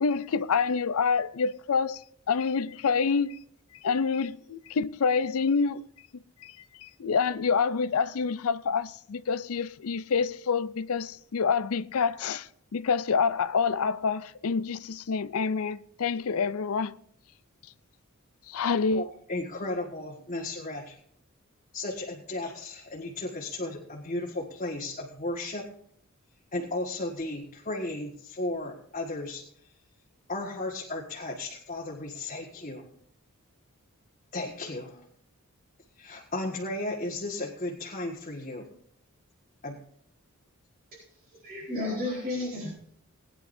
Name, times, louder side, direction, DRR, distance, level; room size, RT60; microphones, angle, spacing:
voice 1, 0.0-3.4 3.8-5.9 6.1-16.9 18.5-19.1, left 5 dB, 80° left, 0.5 m, -27 dB
voice 2, 18.9-21.0 21.7-25.7 26.5-29.4 30.3-32.9 34.3-35.0 36.0-38.7 39.6-39.8, left 2 dB, 35° left, 1.7 m, -35 dB
voice 3, 41.3-42.9, left 2 dB, 45° right, 4.3 m, -33 dB
20.0 x 10.0 x 2.7 m
head